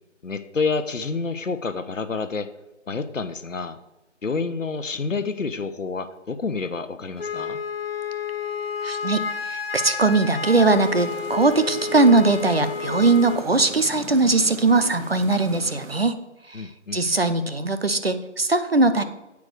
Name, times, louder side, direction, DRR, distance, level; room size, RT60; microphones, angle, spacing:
voice 1, 0.2-2.5 2.9-3.8 4.2-7.6 16.5-17.0, left 4 dB, 85° left, 11 dB, 1.0 m, -28 dB
Wind instrument woodwind instrument, 7.2-13.5, left 6 dB, 55° left, 0.6 m, -30 dB
voice 2, 8.8-16.1 16.5-19.0, right 3 dB, 55° right, 10 dB, 0.7 m, -20 dB
sound 1, 10.4-16.0, right 5 dB, 90° right, 0.8 m, -40 dB
8.3 x 4.8 x 6.6 m, 1.0 s
figure-of-eight pair, 180°, 37 cm